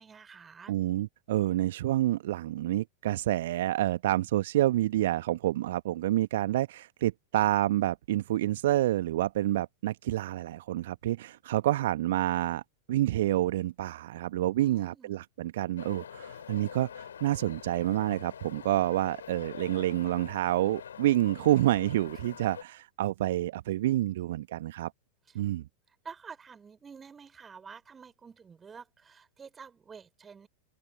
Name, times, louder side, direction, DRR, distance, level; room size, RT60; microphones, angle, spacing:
voice 1, 0.0-0.7 14.6-15.2 25.3-25.4 25.9-30.5, right 6 dB, 20° right, 4.0 m, -49 dB
voice 2, 0.7-12.6 12.9-24.9 25.3-25.6, right 14 dB, 55° right, 1.2 m, -28 dB
sound 1, 15.8-22.6, left 8 dB, 65° left, 3.7 m, -45 dB
open air
figure-of-eight pair, 90°, 0 cm